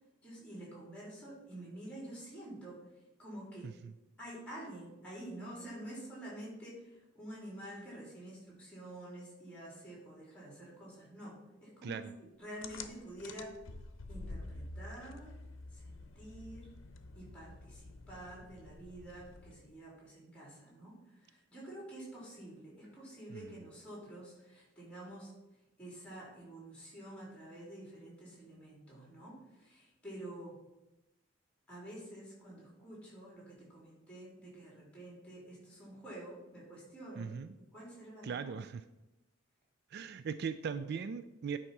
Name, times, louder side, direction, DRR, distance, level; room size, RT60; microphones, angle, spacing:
voice 1, 0.2-2.8 3.2-3.7 4.2-13.5 14.1-15.3 15.7-16.7 17.1-25.3 25.8-30.6 31.7-37.3 37.7-38.4, right 1 dB, 5° left, -4 dB, 3.5 m, -48 dB
voice 2, 11.8-12.1 23.3-23.5 37.2-37.5 38.2-38.8 39.9-41.6, right 6 dB, 55° right, 12 dB, 0.3 m, -39 dB
sound 1, 12.6-19.8, left 2 dB, 80° left, 0.7 m, -49 dB
9.8 x 4.3 x 5.9 m, 0.99 s
head